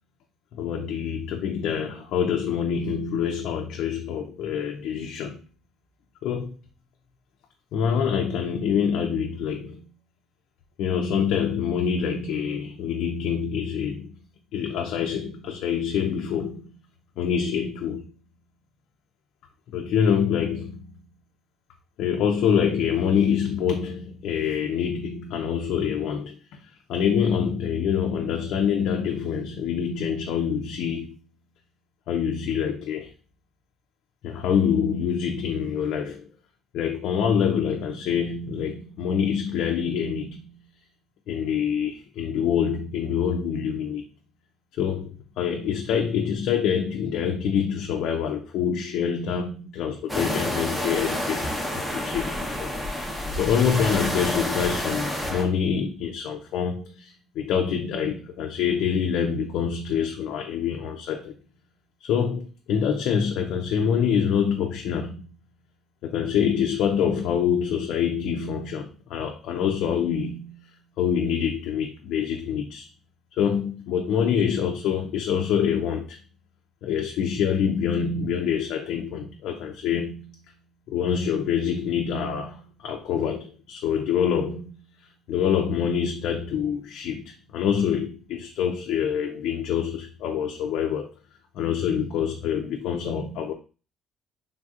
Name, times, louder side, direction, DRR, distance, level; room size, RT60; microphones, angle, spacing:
voice 1, 0.5-5.4 6.2-6.6 7.7-9.9 10.8-14.2 14.5-16.8 17.2-18.1 19.7-21.0 22.0-26.6 26.9-31.2 32.1-33.1 34.2-36.3 36.7-40.6 41.3-44.0 44.8-52.7 53.4-61.3 62.0-65.2 66.0-70.6 71.0-72.9 73.4-76.2 76.8-80.3 80.9-84.8 85.3-91.1 91.6-93.5, left 7 dB, 75° left, 0.4 m, -26 dB
sound 1, 50.1-55.4, left 1 dB, 5° right, 0.8 m, -29 dB
3.4 x 2.6 x 2.4 m
cardioid pair, 105°, 0 cm